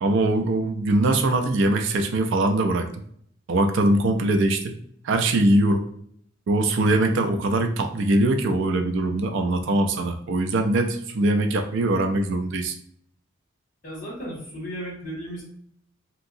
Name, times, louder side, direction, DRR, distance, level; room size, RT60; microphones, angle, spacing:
voice 1, 0.0-3.0 3.5-4.7 5.0-5.8 6.5-12.7, right 2 dB, 60° right, 6 dB, 0.4 m, -22 dB
voice 2, 13.8-15.4, equal, 40° left, -3 dB, 1.3 m, -34 dB
3.0 x 2.7 x 2.5 m, 0.65 s
head